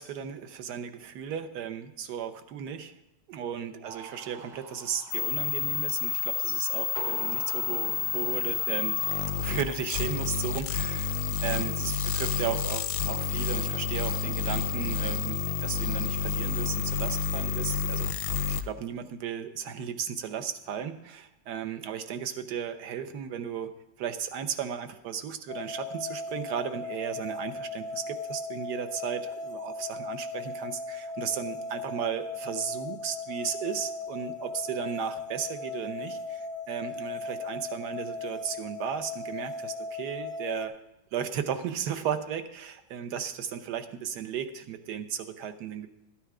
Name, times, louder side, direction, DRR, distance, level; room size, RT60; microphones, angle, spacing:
voice 1, 0.0-2.9 3.3-9.0 9.4-18.1 18.5-40.8 41.1-45.9, right 8 dB, 65° right, 10 dB, 1.3 m, -35 dB
sound 1, 3.8-10.0, right 3 dB, 30° right, 1.1 m, -46 dB
sound 2, 5.1-18.6, left 7 dB, 85° left, 1.3 m, -29 dB
sound 3, 25.5-40.7, left 3 dB, 35° left, 0.6 m, -37 dB
13.0 x 9.2 x 4.8 m, 0.94 s
omnidirectional pair, 2.0 m